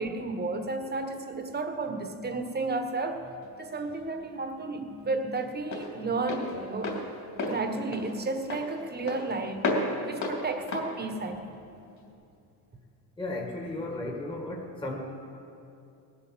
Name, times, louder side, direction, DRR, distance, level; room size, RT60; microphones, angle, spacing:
voice 1, 0.0-3.3 3.6-7.0 7.3-11.6, right 3 dB, 25° right, 6 dB, 1.4 m, -32 dB
Walk footsteps, 3.4-12.1, left 2 dB, 40° left, 3.2 m, -34 dB
voice 2, 13.2-15.0, left 2 dB, 10° left, 0 dB, 1.7 m, -34 dB
18.5 x 8.3 x 7.5 m, 2.6 s
cardioid pair, 115°, 42 cm